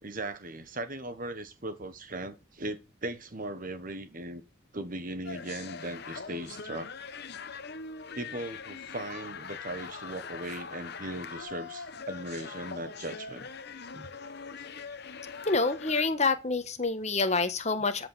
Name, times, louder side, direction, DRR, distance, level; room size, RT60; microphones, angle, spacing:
voice 1, 0.0-4.4 4.7-6.9 8.1-13.5 13.9-14.1, right 1 dB, 40° right, 1.3 m, -38 dB
sound 1, 5.2-16.1, left 5 dB, 50° left, 1.0 m, -42 dB
voice 2, 15.4-18.1, left 3 dB, 35° left, 1.3 m, -27 dB
13.5 x 5.4 x 6.8 m
head